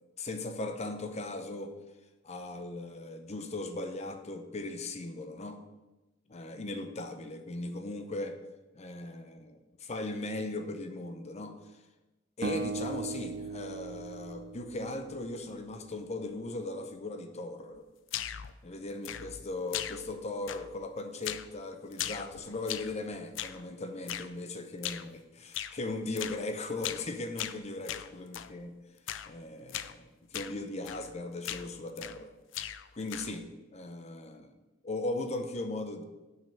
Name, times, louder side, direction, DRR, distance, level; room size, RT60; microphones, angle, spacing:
voice 1, 0.2-1.7 2.2-5.6 6.3-8.4 8.7-11.6 12.4-17.8 18.6-28.8 29.3-32.3 32.9-34.5 34.8-36.0, left 2 dB, 35° left, 7 dB, 0.7 m, -38 dB
sound 1, 12.4-15.6, right 4 dB, 50° right, 0.6 m, -38 dB
sound 2, 18.1-18.5 19.0-19.5 19.7-20.2 20.5-20.9 21.2-21.5 21.9-23.0 23.4-23.6 24.1-24.3 24.8-25.1 25.5-25.8 26.2-26.4 26.8-27.1 27.4-28.5 29.1-29.3 29.7-30.0 30.3-30.6 30.9-31.1 31.4-32.3 32.5-33.4, left 11 dB, 70° left, 0.4 m, -38 dB
6.1 x 5.4 x 6.8 m, 1.1 s
head